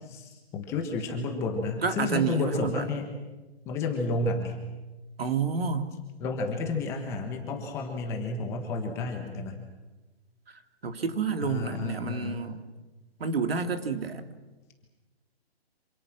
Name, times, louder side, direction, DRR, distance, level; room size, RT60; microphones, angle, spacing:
voice 1, 0.0-3.1 3.6-4.6 6.2-9.6 11.4-12.4, left 3 dB, 10° left, 2 dB, 1.4 m, -31 dB
voice 2, 1.8-2.9 5.2-5.9 10.8-12.6 13.2-14.2, right 5 dB, 65° right, 7 dB, 2.7 m, -29 dB
27.0 x 27.0 x 6.2 m, 1.1 s
hypercardioid pair, 175°, 31 cm